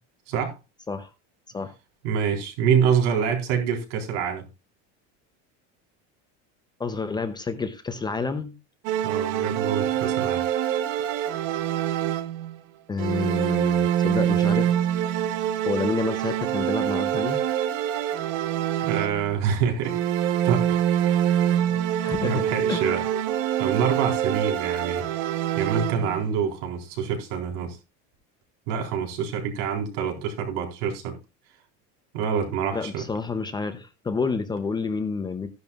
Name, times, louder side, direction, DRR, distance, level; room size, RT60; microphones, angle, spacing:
voice 1, 2.0-4.4 9.0-10.4 18.8-20.0 20.4-20.8 21.1-21.5 22.2-23.0 23.6-25.2 25.6-27.8 28.7-31.1 32.1-33.0, right 7 dB, 80° right, 4.1 m, -26 dB
voice 2, 6.8-8.5 12.9-14.7 14.9-15.0 15.6-17.4 22.0-22.9 32.7-35.5, left 4 dB, 10° left, 0.6 m, -29 dB
sound 1, 8.8-12.6 13.0-19.4 19.8-26.3, right 10 dB, 65° right, 1.0 m, -25 dB
14.0 x 10.5 x 2.4 m
cardioid pair, 160°, 35 cm